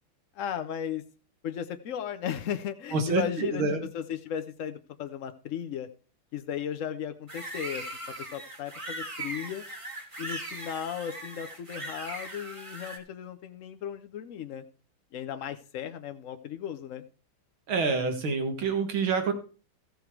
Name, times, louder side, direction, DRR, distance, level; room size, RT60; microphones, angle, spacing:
voice 1, 0.3-1.0 1.4-3.7 3.9-5.9 6.3-7.8 8.2-9.6 10.2-14.6 15.1-17.0, left 9 dB, 75° left, 9 dB, 0.7 m, -35 dB
voice 2, 2.9-3.9 17.7-19.3, right 4 dB, 80° right, 6 dB, 2.4 m, -27 dB
sound 1, 7.3-13.0, right 2 dB, 15° right, 1.4 m, -39 dB
14.5 x 6.8 x 4.6 m, 0.37 s
omnidirectional pair, 2.2 m